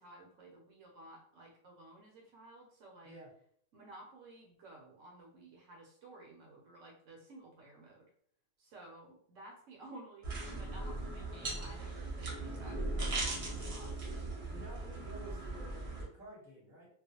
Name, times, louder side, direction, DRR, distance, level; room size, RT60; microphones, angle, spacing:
voice 1, 0.0-3.1 3.7-8.1 8.6-14.0, right 1 dB, 70° right, -1 dB, 0.9 m, -54 dB
sound 1, 10.2-16.0, right 2 dB, 40° right, 0.5 m, -39 dB
voice 2, 14.5-16.9, right 1 dB, ahead, -6 dB, 0.8 m, -51 dB
2.4 x 2.1 x 2.7 m, 0.62 s
omnidirectional pair, 1.5 m